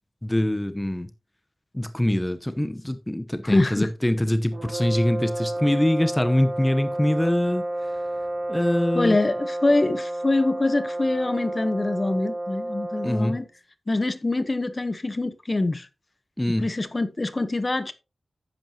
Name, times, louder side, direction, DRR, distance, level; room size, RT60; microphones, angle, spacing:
voice 1, 0.2-1.1 1.7-7.6 8.5-9.2 13.0-13.4 16.4-16.7, left 1 dB, 15° left, 0.9 m, -24 dB
voice 2, 3.4-3.9 8.9-13.4 13.9-15.9 16.6-17.9, left 2 dB, 35° left, 1.0 m, -24 dB
sound 1, 4.5-13.5, right 1 dB, 65° right, 3.6 m, -30 dB
10.5 x 8.6 x 2.9 m
cardioid pair, 55°, 0 cm